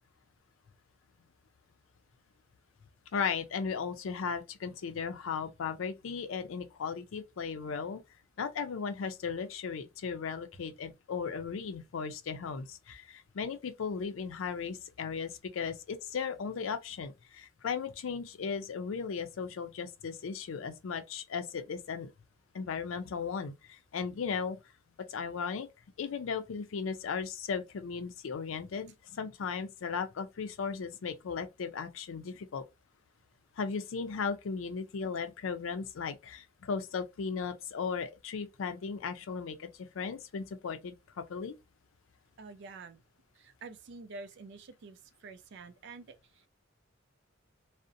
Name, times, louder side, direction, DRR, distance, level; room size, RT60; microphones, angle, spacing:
voice 1, 3.1-8.0 8.4-22.1 22.5-24.6 25.1-25.7 26.0-32.6 33.6-39.7 39.9-41.6, left 5 dB, 85° left, 0.4 m, -36 dB
voice 2, 42.4-43.0 43.3-46.5, right 3 dB, 60° right, 0.4 m, -48 dB
2.5 x 2.0 x 2.5 m
head